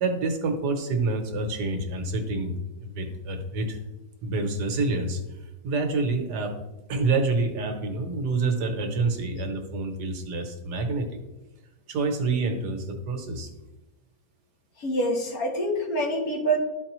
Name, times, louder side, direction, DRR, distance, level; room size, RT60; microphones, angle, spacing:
voice 1, 0.0-2.6 2.8-3.8 4.2-5.4 5.6-6.5 6.9-11.1 11.9-13.5, right 3 dB, 70° right, 4 dB, 1.5 m, -27 dB
voice 2, 14.8-16.6, right 1 dB, 55° left, 1 dB, 1.6 m, -26 dB
12.5 x 4.4 x 3.0 m, 1.1 s
omnidirectional pair, 1.9 m